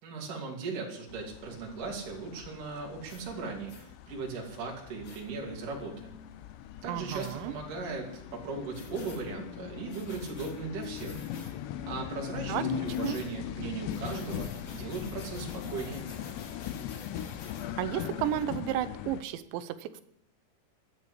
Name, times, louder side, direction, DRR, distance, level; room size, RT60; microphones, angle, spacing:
voice 1, 0.0-3.7 4.1-6.1 6.8-11.2 11.9-16.0, right 4 dB, 50° right, -1 dB, 4.0 m, -38 dB
sound 1, 1.1-19.2, left 10 dB, 80° left, 2.8 m, -40 dB
sound 2, 3.1-3.2 3.7-3.9 5.0-5.2 7.1-7.4 8.7-9.2 9.9-10.5 10.9-11.5 12.9-13.3 13.9-17.7, left 4 dB, 45° left, 2.9 m, -49 dB
voice 2, 6.9-7.5 12.5-13.2 17.8-20.0, right 12 dB, 85° right, 13 dB, 3.1 m, -33 dB
12.5 x 9.8 x 8.4 m, 0.77 s
omnidirectional pair, 5.1 m